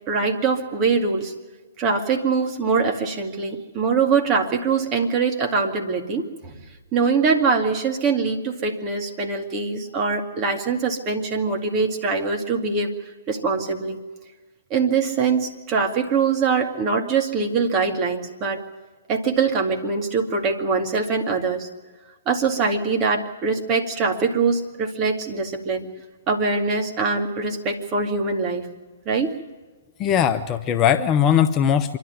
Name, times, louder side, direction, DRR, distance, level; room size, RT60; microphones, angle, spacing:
voice 1, 0.1-1.3 1.8-6.5 6.9-12.9 13.3-14.0 14.7-18.6 19.1-21.7 22.3-25.9 26.3-28.7 29.1-29.4, right 4 dB, 30° right, 4 dB, 2.4 m, -23 dB
voice 2, 30.0-32.0, left 9 dB, 25° left, 9 dB, 0.8 m, -19 dB
26.0 x 12.0 x 9.3 m, 1.3 s
figure-of-eight pair, 125°, 0 cm